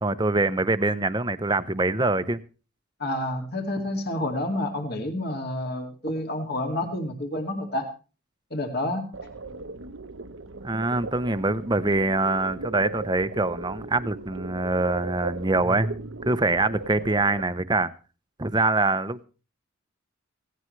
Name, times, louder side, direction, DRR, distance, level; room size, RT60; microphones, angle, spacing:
voice 1, 0.0-2.4 10.6-15.9 16.2-17.9 18.4-19.2, right 2 dB, 20° right, 0.7 m, -24 dB
voice 2, 3.0-7.9 8.5-9.1, left 1 dB, 45° left, 2.3 m, -29 dB
sound 1, 9.1-17.4, right 3 dB, 65° right, 0.9 m, -37 dB
17.0 x 17.0 x 3.2 m
head